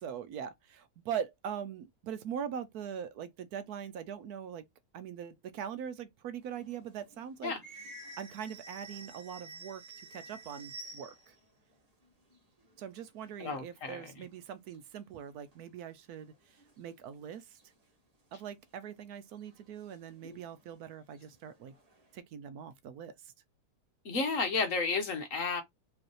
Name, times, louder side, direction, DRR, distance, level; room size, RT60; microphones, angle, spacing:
voice 1, 0.0-4.6 4.9-7.5 8.2-9.8 10.1-11.3 12.8-16.3 16.8-17.6 18.3-21.7 22.1-23.3, right 8 dB, 70° right, 1.1 m, -41 dB
sound 1, 6.4-11.4 11.7-11.8 12.0-13.4 13.9-14.0 14.2-14.8 15.5-15.6 16.2-17.1 17.6-17.7 18.8-18.9 19.4-20.8 21.1-22.2, right 2 dB, 25° right, 1.2 m, -51 dB
voice 2, 13.4-14.2 20.2-20.4 24.0-25.6, left 4 dB, 55° left, 1.3 m, -32 dB
4.9 x 3.2 x 3.0 m
omnidirectional pair, 1.8 m